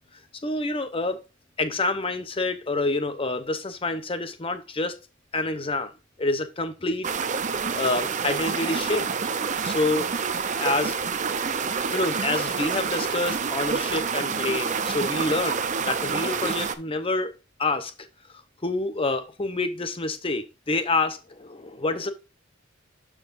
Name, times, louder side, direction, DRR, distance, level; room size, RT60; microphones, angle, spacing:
voice 1, 0.4-1.2 1.6-5.0 5.3-5.9 6.2-7.1 7.8-9.3 9.6-11.0 11.9-17.9 18.6-22.1, left 2 dB, 25° left, 0.8 m, -27 dB
sound 1, 7.0-16.7, right 5 dB, 35° right, 0.6 m, -28 dB
12.0 x 4.8 x 2.6 m
head